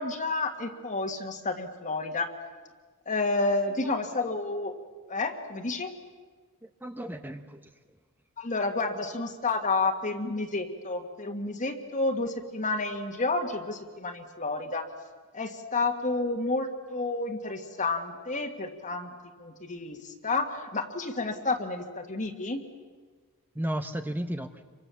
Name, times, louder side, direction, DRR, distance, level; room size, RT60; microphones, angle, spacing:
voice 1, 0.0-2.3 3.1-4.7 5.1-5.9 8.4-14.8 15.3-19.1 19.4-22.6, left 3 dB, 35° left, 3 dB, 1.8 m, -30 dB
voice 2, 6.6-7.7 23.5-24.6, right 1 dB, 10° right, 8 dB, 0.8 m, -34 dB
28.5 x 24.5 x 7.1 m, 1.4 s
head